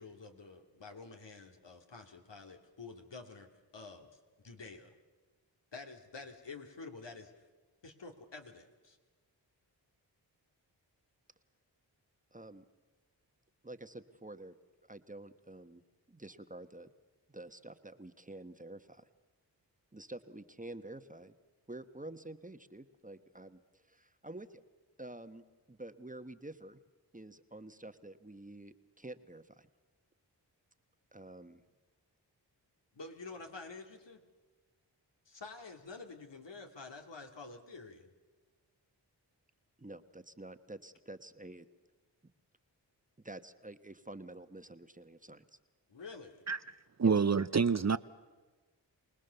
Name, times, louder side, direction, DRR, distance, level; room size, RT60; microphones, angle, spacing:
voice 1, 0.0-4.2 4.4-4.9 5.7-7.3 7.8-9.0 32.9-34.2 35.3-38.1 45.9-46.4, left 3 dB, 70° left, 2.6 m, -49 dB
voice 2, 12.3-12.6 13.6-14.5 14.9-15.8 16.1-16.9 17.3-19.1 19.9-21.3 21.7-24.6 25.0-26.8 27.1-29.7 31.1-31.6 39.8-41.7 43.2-45.6 47.0-47.1, right 2 dB, 20° right, 1.3 m, -49 dB
voice 3, 47.0-48.0, right 5 dB, 35° right, 0.7 m, -27 dB
25.0 x 19.0 x 7.0 m
cardioid pair, 45°, 44 cm